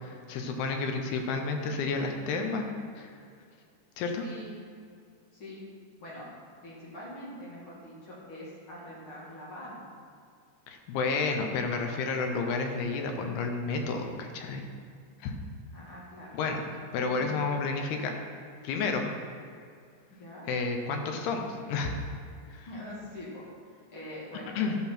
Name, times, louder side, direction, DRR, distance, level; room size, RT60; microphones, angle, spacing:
voice 1, 0.0-2.7 3.0-3.1 4.0-4.2 10.7-14.6 15.2-15.3 16.3-16.6 16.9-18.1 18.6-19.1 20.5-22.0 22.5-22.7 24.6-24.8, left 4 dB, 75° left, 4 dB, 2.7 m, -31 dB
voice 2, 4.2-4.5 5.3-5.6 6.0-6.3 6.6-9.8 15.7-16.4 16.7-16.8 20.1-20.5 22.7-24.7, left 1 dB, 40° left, -6 dB, 2.0 m, -44 dB
14.0 x 5.9 x 4.4 m, 2.3 s
omnidirectional pair, 5.0 m